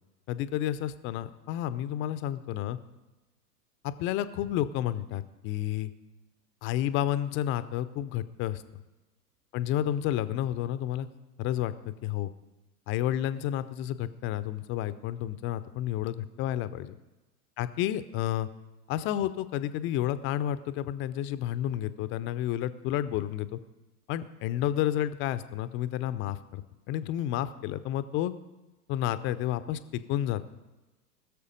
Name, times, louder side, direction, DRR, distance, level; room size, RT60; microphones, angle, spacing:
voice 1, 0.3-2.8 3.8-5.9 6.6-8.6 9.5-11.1 11.4-12.3 12.9-16.9 17.6-18.5 18.9-23.6 24.1-28.3 28.9-30.6, left 12 dB, 25° left, 14 dB, 0.5 m, -31 dB
19.5 x 6.8 x 5.2 m, 1.1 s
figure-of-eight pair, 95°, 49 cm